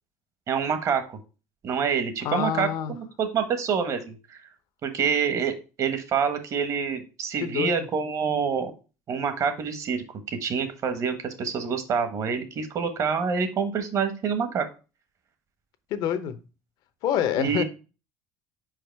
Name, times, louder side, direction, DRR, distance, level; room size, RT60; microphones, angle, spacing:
voice 1, 0.5-1.2 1.6-4.4 4.8-8.7 9.1-14.7 17.4-17.6, right 6 dB, 45° right, 1.3 m, -27 dB
voice 2, 2.2-3.0 7.4-7.9 15.9-16.4 17.0-17.6, left 9 dB, 65° left, 0.8 m, -27 dB
4.9 x 4.9 x 4.6 m
supercardioid pair, 105°, 8 cm